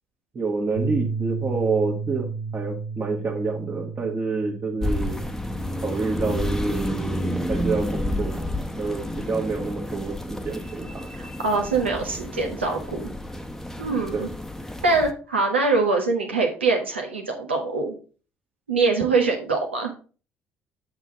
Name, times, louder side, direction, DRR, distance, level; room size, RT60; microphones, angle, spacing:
voice 1, 0.3-5.2 5.8-8.4 8.8-11.1 14.1-14.2, right 4 dB, 40° right, -3 dB, 1.8 m, -28 dB
Bass guitar, 0.8-7.0, right 5 dB, 80° left, 0.9 m, -33 dB
sound 1, 4.8-15.1, left 1 dB, 5° left, 1.0 m, -30 dB
voice 2, 11.2-13.1 13.8-14.3 14.8-17.9 18.7-19.9, right 3 dB, 90° right, 2 dB, 1.3 m, -23 dB
8.1 x 5.6 x 3.8 m, 0.36 s
figure-of-eight pair, 50°, 6 cm